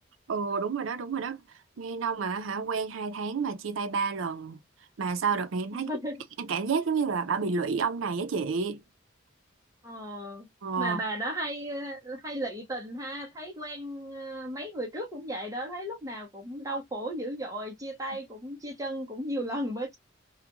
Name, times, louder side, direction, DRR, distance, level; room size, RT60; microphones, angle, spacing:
voice 1, 0.3-1.4 1.8-4.6 5.0-5.9 6.4-8.8 10.6-11.0, right 5 dB, 80° right, 0.5 m, -30 dB
voice 2, 5.7-6.2 9.8-10.5 10.8-20.0, right 1 dB, 15° right, 0.7 m, -35 dB
2.4 x 2.1 x 2.9 m
head